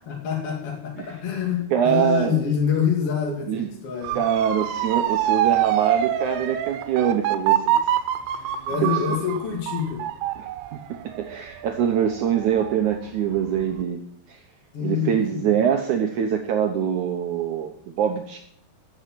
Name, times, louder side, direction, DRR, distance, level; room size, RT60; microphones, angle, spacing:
voice 1, 0.1-4.2 8.7-10.0 14.7-15.4, left 7 dB, 40° left, 0 dB, 3.0 m, -26 dB
voice 2, 1.7-2.4 3.5-3.7 4.1-7.8 8.8-9.0 10.4-10.5 11.2-14.0 14.3-14.4 14.8-18.4, right 8 dB, 70° right, 4 dB, 2.0 m, -24 dB
Motor vehicle (road) / Siren, 4.0-13.0 13.4-13.8, right 11 dB, 85° right, 2.9 m, -25 dB
15.0 x 7.1 x 7.7 m, 0.67 s
omnidirectional pair, 4.5 m